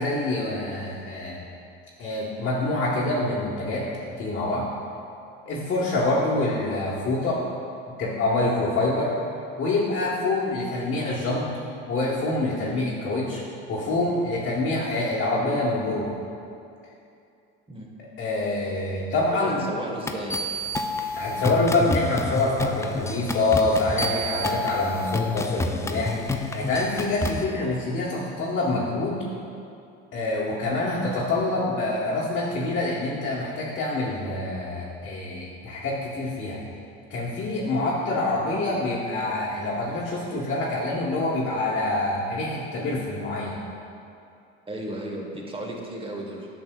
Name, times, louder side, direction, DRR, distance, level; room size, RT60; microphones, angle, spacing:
voice 1, 0.0-1.4 2.0-3.9 4.2-4.7 5.5-7.4 7.9-9.1 9.6-11.5 11.9-13.4 13.7-16.1 18.2-19.6 21.2-29.2 30.1-36.6 37.1-43.6, left 2 dB, 40° left, -6 dB, 1.2 m, -26 dB
voice 2, 19.3-20.4 44.7-46.5, right 1 dB, 20° right, 0 dB, 1.1 m, -34 dB
sound 1, 20.1-27.4, left 2 dB, 10° left, 0.3 m, -29 dB
8.5 x 5.8 x 2.3 m, 2.6 s
supercardioid pair, 80°, 30 cm